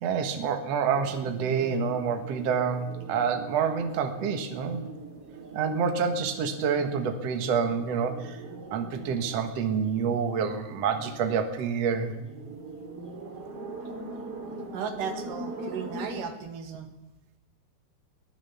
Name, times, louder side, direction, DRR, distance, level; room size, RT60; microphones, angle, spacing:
voice 1, 0.0-4.8 5.5-8.4 8.7-12.1, right 6 dB, 75° right, 5 dB, 1.5 m, -28 dB
sound 1, 0.9-16.3, right 2 dB, 35° right, 3.2 m, -42 dB
voice 2, 14.7-17.0, right 6 dB, 55° right, 6 dB, 2.7 m, -35 dB
22.5 x 16.5 x 7.1 m, 0.97 s
omnidirectional pair, 5.6 m